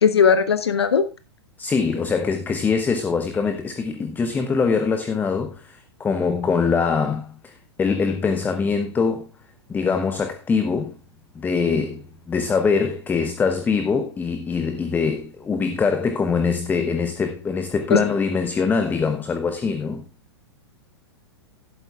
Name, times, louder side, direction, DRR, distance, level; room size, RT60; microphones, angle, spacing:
voice 1, 0.0-1.0 17.9-18.0, left 6 dB, 70° left, 0.9 m, -17 dB
voice 2, 1.6-9.3 9.7-11.0 11.3-20.0, left 5 dB, 10° left, 0.8 m, -23 dB
12.0 x 11.5 x 2.4 m
figure-of-eight pair, 105°, 14 cm